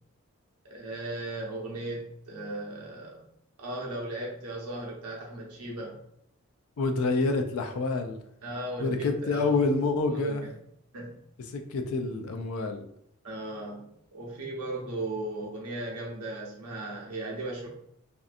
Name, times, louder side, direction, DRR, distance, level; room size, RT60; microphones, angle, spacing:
voice 1, 0.6-3.2 3.6-6.0 8.4-9.7 10.1-10.5 10.9-11.2 13.2-17.7, right 2 dB, 90° right, -2 dB, 0.8 m, -36 dB
voice 2, 6.8-8.2 8.8-10.4 11.5-12.8, left 3 dB, 75° left, 5 dB, 0.4 m, -27 dB
2.6 x 2.5 x 2.4 m, 0.72 s
head